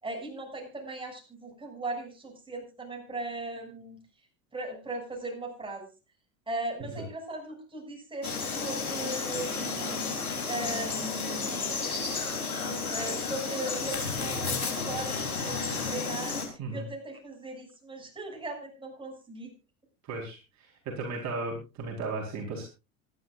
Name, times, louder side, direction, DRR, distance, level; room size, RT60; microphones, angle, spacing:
voice 1, 0.0-4.0 4.5-5.9 6.5-10.0 10.5-11.6 12.6-19.5, right 2 dB, 10° right, 1 dB, 7.1 m, -38 dB
Frog, 8.2-16.5, left 4 dB, 90° left, 3.9 m, -32 dB
voice 2, 20.1-20.4 20.9-22.7, right 3 dB, 40° right, 0 dB, 4.5 m, -34 dB
26.0 x 11.5 x 2.5 m, 0.29 s
figure-of-eight pair, 80°, 42 cm